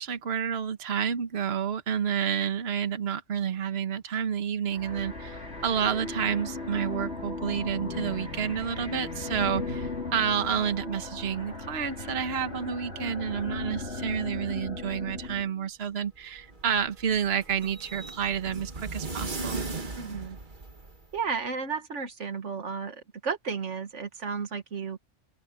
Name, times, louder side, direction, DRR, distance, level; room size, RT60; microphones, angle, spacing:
voice 1, 0.0-19.6, right 8 dB, 60° right, 1.4 m, -30 dB
sound 1, 4.7-15.5, left 3 dB, 65° left, 4.5 m, -37 dB
sound 2, 16.1-21.2, right 3 dB, 45° right, 1.8 m, -38 dB
voice 2, 20.0-20.4 21.1-25.0, right 5 dB, 80° right, 1.8 m, -33 dB
open air
omnidirectional pair, 1.2 m